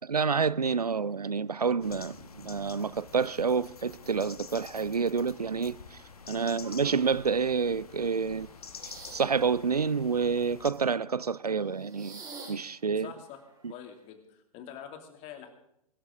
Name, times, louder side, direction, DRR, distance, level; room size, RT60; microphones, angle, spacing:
voice 1, 0.1-6.0 6.3-8.5 9.1-12.2 12.5-13.1, right 5 dB, 90° right, 0.6 m, -28 dB
sound 1, 1.2-1.3 1.9-2.7 3.1-7.6 8.2-9.4 9.7-10.8 11.5-14.1, right 3 dB, 20° right, 5.0 m, -51 dB
sound 2, 1.8-10.7, left 6 dB, 75° left, 1.7 m, -48 dB
voice 2, 13.0-13.4 13.7-15.5, left 9 dB, 35° left, 2.9 m, -46 dB
23.5 x 13.0 x 3.8 m
figure-of-eight pair, 110°, 19 cm